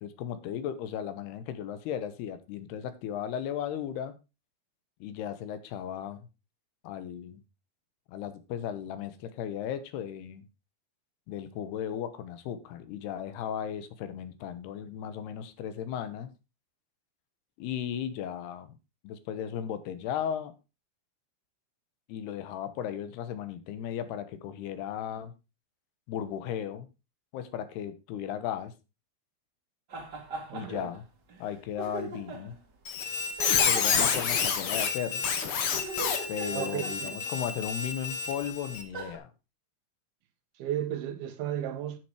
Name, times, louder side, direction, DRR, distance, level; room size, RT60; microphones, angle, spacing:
voice 1, 0.0-4.1 5.0-6.2 6.8-7.4 8.1-10.4 11.3-16.3 17.6-18.7 19.0-20.5 22.1-25.3 26.1-26.9 27.3-28.7 30.5-31.0 31.4-32.6 33.6-35.3 36.3-39.3, left 9 dB, 85° left, 3.2 m, -36 dB
sound 1, 29.9-31.0 31.3-31.4 31.8-32.5 33.4-34.8 35.7-37.5 38.4-38.5 38.9-39.2, right 3 dB, 40° right, 1.5 m, -40 dB
voice 2, 30.5-30.9 36.5-37.2 40.6-42.0, right 11 dB, 80° right, 2.9 m, -34 dB
Squeak, 32.8-38.8, left 6 dB, 70° left, 1.3 m, -29 dB
9.4 x 7.4 x 4.8 m
omnidirectional pair, 4.5 m